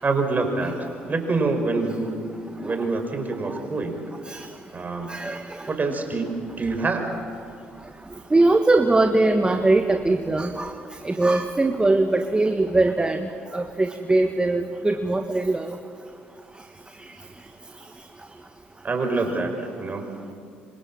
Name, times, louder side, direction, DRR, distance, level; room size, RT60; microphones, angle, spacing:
voice 1, 0.0-0.7 1.1-2.1 2.7-4.0 4.7-5.1 5.7-7.0 18.8-19.5 19.8-20.1, right 3 dB, 35° right, 4 dB, 5.7 m, -25 dB
voice 2, 5.1-5.6 8.3-10.7 11.0-15.8, right 2 dB, 20° right, 6 dB, 1.6 m, -21 dB
26.5 x 26.0 x 7.8 m, 2.3 s
hypercardioid pair, 55°, 5 cm